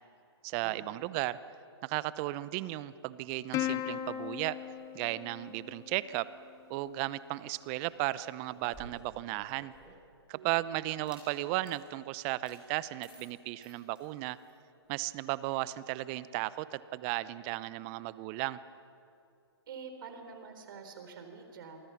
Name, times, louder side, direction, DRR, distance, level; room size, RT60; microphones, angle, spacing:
voice 1, 0.4-1.4 1.8-4.6 4.9-6.3 6.7-9.7 10.3-14.4 14.9-18.6, right 17 dB, 30° right, 17 dB, 0.7 m, -35 dB
Plucked string instrument, 3.5-6.3, left 12 dB, 20° left, 1.1 m, -37 dB
sound 1, 8.5-10.1 10.9-11.3 11.6-11.8 12.4-12.6 13.0-14.5, right 3 dB, 5° right, 6.3 m, -54 dB
voice 2, 10.3-10.9 19.7-21.8, right 5 dB, 55° right, 6 dB, 4.4 m, -47 dB
29.0 x 24.5 x 6.0 m, 2.7 s
figure-of-eight pair, 130°, 14 cm